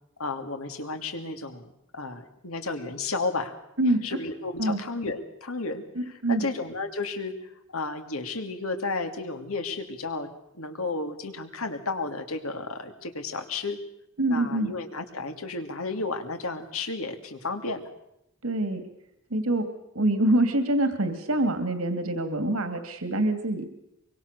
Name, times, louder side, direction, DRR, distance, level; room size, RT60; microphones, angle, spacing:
voice 1, 0.2-3.5 3.9-7.3 7.7-10.3 10.5-13.8 14.3-17.9, left 3 dB, 80° left, 7 dB, 2.8 m, -33 dB
voice 2, 6.0-6.4 14.2-14.7 18.4-18.8 19.3-19.6 19.9-23.7, right 1 dB, 80° right, 9 dB, 2.5 m, -25 dB
24.0 x 24.0 x 6.8 m, 0.82 s
head